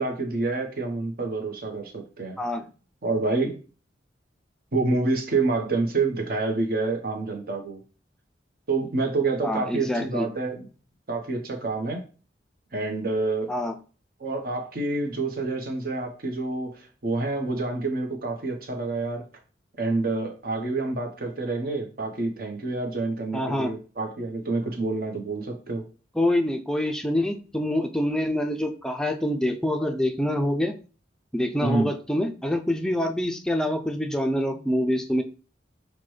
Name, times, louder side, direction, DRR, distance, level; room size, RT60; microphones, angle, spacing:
voice 1, 0.0-2.4 3.0-3.6 4.7-7.8 8.7-10.7 11.1-12.0 12.7-13.5 14.2-19.2 19.8-25.8 31.6-31.9, right 3 dB, 55° right, 3 dB, 0.9 m, -27 dB
voice 2, 9.4-10.3 13.5-13.7 23.3-23.7 26.1-30.7 31.3-35.2, left 1 dB, 5° left, 4 dB, 0.4 m, -26 dB
5.8 x 2.2 x 3.2 m, 0.37 s
head